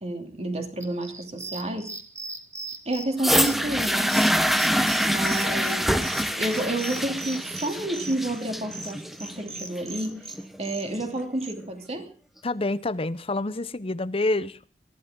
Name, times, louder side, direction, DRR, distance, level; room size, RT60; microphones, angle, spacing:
voice 1, 0.0-1.9 2.8-4.5 5.0-5.9 6.3-10.3 10.6-12.1, right 1 dB, 35° right, 3.0 m, -30 dB
sound 1, 0.8-11.5, right 3 dB, 15° right, 1.8 m, -39 dB
sound 2, 3.2-11.2 12.0-12.1, equal, ahead, 0.9 m, -25 dB
voice 2, 12.4-14.6, left 2 dB, 30° left, 0.7 m, -27 dB
21.5 x 15.0 x 3.8 m
head